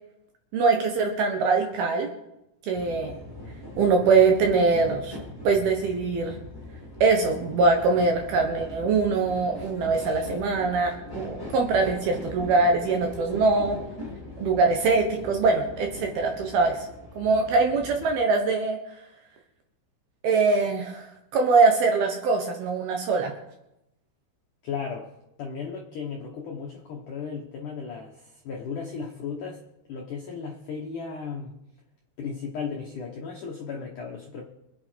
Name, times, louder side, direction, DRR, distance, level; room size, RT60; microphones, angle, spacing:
voice 1, 0.5-2.1 2.7-3.2 3.8-5.2 5.4-6.4 7.0-13.8 14.4-16.9 17.2-18.8 20.2-23.3, right 4 dB, 65° right, 3 dB, 2.6 m, -23 dB
sound 1, 2.7-18.1, left 1 dB, 5° left, 2.0 m, -41 dB
voice 2, 24.6-25.1 25.4-29.6 29.9-31.5 32.2-34.4, left 5 dB, 70° left, -1 dB, 1.9 m, -35 dB
25.0 x 8.5 x 4.6 m, 0.89 s
omnidirectional pair, 5.7 m